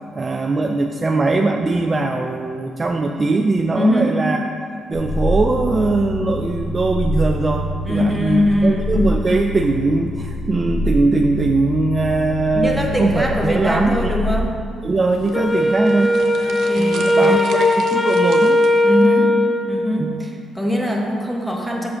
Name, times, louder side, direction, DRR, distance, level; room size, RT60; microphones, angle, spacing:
voice 1, 0.2-4.5 4.9-14.1 14.8-16.2 16.8-18.6 20.0-20.2, right 3 dB, 30° right, 4 dB, 0.3 m, -20 dB
voice 2, 3.7-4.3 7.8-9.1 12.5-14.5 16.4-17.6 18.8-19.3 19.7-21.9, left 1 dB, ahead, -1 dB, 1.1 m, -21 dB
sound 1, 4.9-14.4, left 1 dB, 70° left, 0.9 m, -26 dB
sound 2, 15.1-19.1, right 5 dB, 70° right, 0.7 m, -39 dB
Wind instrument woodwind instrument, 15.3-20.0, left 1 dB, 20° left, 0.6 m, -18 dB
5.7 x 4.8 x 6.1 m, 2.1 s
cardioid pair, 90°, 0 cm